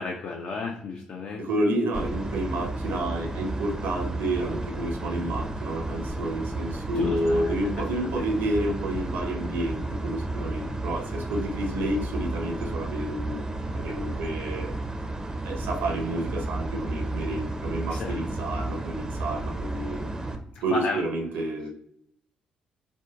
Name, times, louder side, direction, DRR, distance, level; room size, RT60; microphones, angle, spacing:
voice 1, 0.0-1.4 7.0-7.5 17.9-18.2 20.5-21.0, left 3 dB, 50° left, 1 dB, 0.3 m, -32 dB
voice 2, 1.4-13.5 13.7-14.7 15.4-20.0 20.6-21.7, right 1 dB, 65° right, 2 dB, 0.6 m, -30 dB
sound 1, 1.9-20.4, right 2 dB, 15° right, 0.4 m, -32 dB
3.5 x 2.1 x 2.3 m, 0.72 s
figure-of-eight pair, 40°, 4 cm